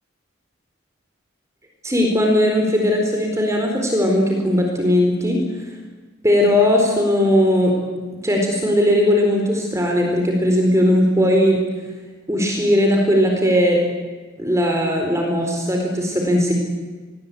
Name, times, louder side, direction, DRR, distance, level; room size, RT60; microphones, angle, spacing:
voice 1, 1.8-5.4 6.2-7.7 8.2-11.6 12.3-13.8 14.4-16.5, left 1 dB, 15° right, 2 dB, 4.2 m, -18 dB
28.0 x 22.0 x 8.6 m, 1.3 s
head